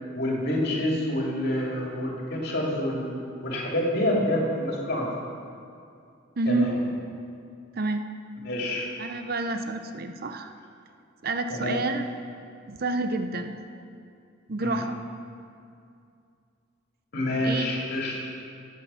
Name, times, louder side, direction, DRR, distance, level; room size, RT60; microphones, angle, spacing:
voice 1, 0.1-3.1 3.4-5.1 6.5-6.7 8.4-8.9 11.5-11.8 14.6-14.8 17.1-18.2, left 1 dB, 55° left, -2 dB, 2.6 m, -27 dB
voice 2, 6.4-6.8 7.8-8.1 9.0-10.5 11.2-12.0 12.7-13.6 14.5-15.0 17.4-17.7, right 2 dB, 50° right, 7 dB, 0.7 m, -29 dB
14.5 x 8.4 x 5.7 m, 2.4 s
head